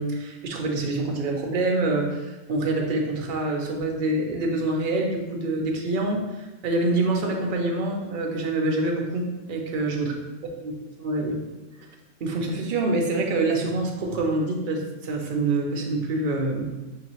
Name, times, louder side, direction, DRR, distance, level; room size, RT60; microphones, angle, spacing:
voice 1, 0.0-10.1 10.6-10.7 11.0-11.4 12.2-16.7, right 2 dB, 50° right, 1 dB, 0.7 m, -26 dB
5.9 x 2.9 x 2.9 m, 1.1 s
omnidirectional pair, 1.3 m